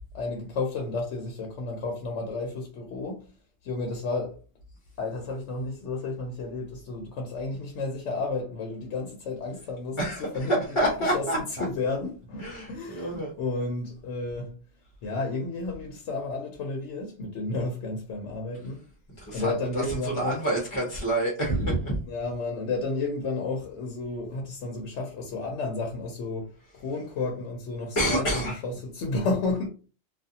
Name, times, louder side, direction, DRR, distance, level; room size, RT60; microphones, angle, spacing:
voice 1, 0.1-3.3 3.6-4.4 5.0-14.6 15.0-18.8 19.3-20.4 22.0-26.5 26.7-29.7, left 3 dB, 75° left, 0.9 m, -32 dB
voice 2, 10.0-11.6 12.4-13.3 19.2-22.0 28.0-28.6, right 1 dB, 30° left, 0.7 m, -28 dB
2.4 x 2.4 x 2.7 m
omnidirectional pair, 1.3 m